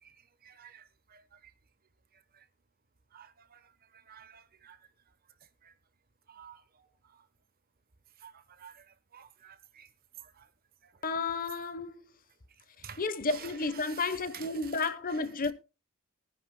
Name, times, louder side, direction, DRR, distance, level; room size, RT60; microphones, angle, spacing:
voice 1, 0.0-1.5 2.1-2.5 3.1-4.8 5.6-5.7 6.3-7.2 8.2-9.9 10.2-10.5 10.8-11.0 11.5-11.6 12.8-15.5, right 8 dB, 45° right, 1.0 m, -52 dB
voice 2, 11.0-12.0 13.0-15.5, left 3 dB, 40° left, 1.0 m, -32 dB
19.5 x 10.5 x 2.2 m
head